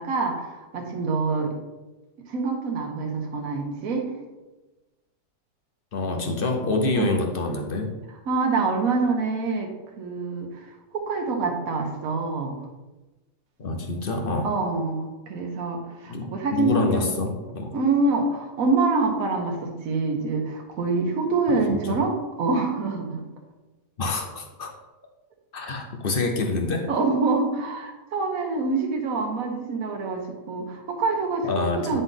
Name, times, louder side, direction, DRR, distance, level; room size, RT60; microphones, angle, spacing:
voice 1, 0.0-1.5 2.3-4.1 6.9-7.1 8.3-9.7 10.0-12.6 14.4-17.0 17.7-23.2 25.6-25.7 26.9-32.0, right 3 dB, 55° right, 2 dB, 1.4 m, -26 dB
voice 2, 5.9-7.9 13.6-14.5 16.1-17.7 21.5-22.0 24.0-24.7 25.5-26.9 31.5-32.0, left 3 dB, 50° left, 3 dB, 0.7 m, -27 dB
9.4 x 4.1 x 3.8 m, 1.1 s
omnidirectional pair, 1.9 m